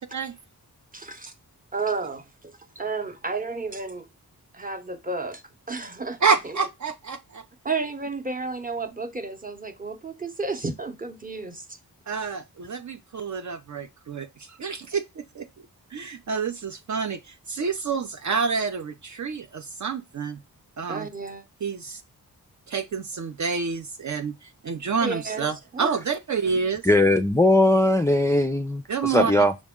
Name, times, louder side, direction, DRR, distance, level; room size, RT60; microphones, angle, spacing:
voice 1, 0.9-1.3 1.7-4.1 4.5-5.4 5.7-6.2 6.4-6.5 7.6-11.8 20.9-21.4 25.0-25.9, right 3 dB, 20° right, 0.8 m, -32 dB
voice 2, 6.2-7.4 12.1-15.5 15.9-20.4 20.8-21.1 21.6-22.0 22.7-26.8 28.9-29.3, right 5 dB, 50° right, 0.5 m, -28 dB
voice 3, 26.8-29.6, left 1 dB, 10° left, 0.4 m, -20 dB
6.0 x 2.1 x 3.5 m
cardioid pair, 45°, 37 cm